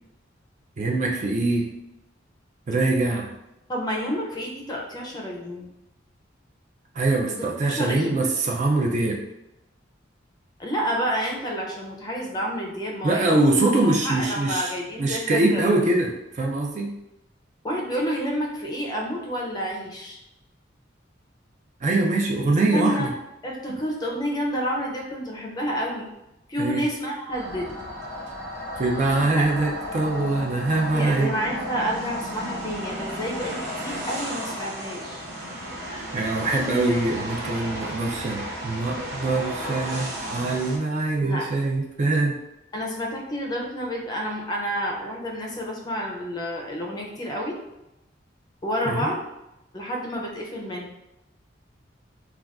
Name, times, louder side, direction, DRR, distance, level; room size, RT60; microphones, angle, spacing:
voice 1, 0.8-1.7 2.7-3.3 7.0-9.2 13.0-14.7 15.0-16.9 21.8-23.1 26.6-26.8 28.8-31.3 35.9-42.4 48.9-49.1, right 2 dB, 40° right, 0 dB, 0.4 m, -23 dB
voice 2, 3.7-5.7 7.2-8.3 10.6-13.5 13.8-15.8 17.6-20.2 22.7-23.1 23.4-26.1 26.5-27.8 29.1-29.5 30.9-35.2 41.2-41.5 42.7-47.6 48.6-49.2 49.7-50.9, equal, 20° left, -1 dB, 0.5 m, -29 dB
sound 1, 27.3-40.8, equal, 60° right, 0.8 m, -34 dB
2.4 x 2.3 x 3.4 m, 0.91 s
head